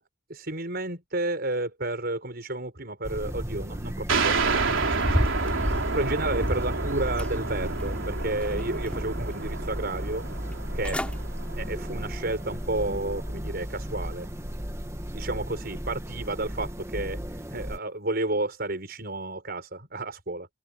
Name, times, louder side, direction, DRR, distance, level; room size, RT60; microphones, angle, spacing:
voice 1, 0.3-10.2 10.7-11.0 11.6-14.3 15.1-17.2 17.5-20.5, right 2 dB, 50° right, 6.4 m, -31 dB
sound 1, 3.0-17.8, equal, 15° right, 2.0 m, -34 dB
sound 2, 4.1-13.3, right 4 dB, 80° right, 3.6 m, -31 dB
sound 3, 4.8-6.8 7.2-8.0 8.4-9.3 9.7-9.8 10.5-10.6 10.8-11.2 11.6-11.9 12.4-12.5, equal, 5° left, 4.7 m, -31 dB
head